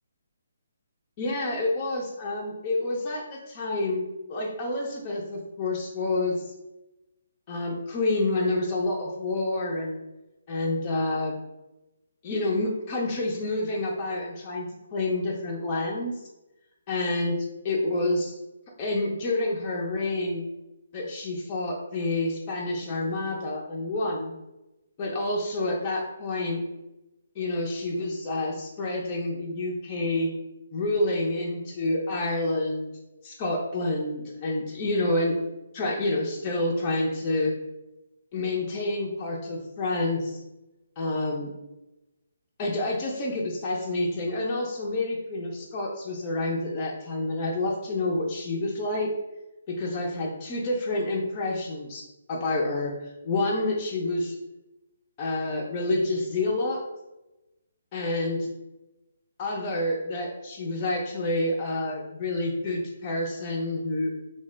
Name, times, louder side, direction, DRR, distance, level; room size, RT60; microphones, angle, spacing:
voice 1, 1.2-6.5 7.5-10.0 10.5-11.3 12.2-14.7 14.9-16.2 16.9-17.3 17.6-18.4 18.8-20.5 20.9-24.3 25.0-26.6 27.4-30.3 30.7-32.9 33.2-35.4 35.7-37.5 38.3-40.4 41.0-41.5 42.6-49.1 49.7-54.4 55.2-56.8 57.9-58.4 59.4-64.1, left 2 dB, 30° left, -2 dB, 0.5 m, -28 dB
3.1 x 2.0 x 3.2 m, 0.98 s
figure-of-eight pair, 140°, 0 cm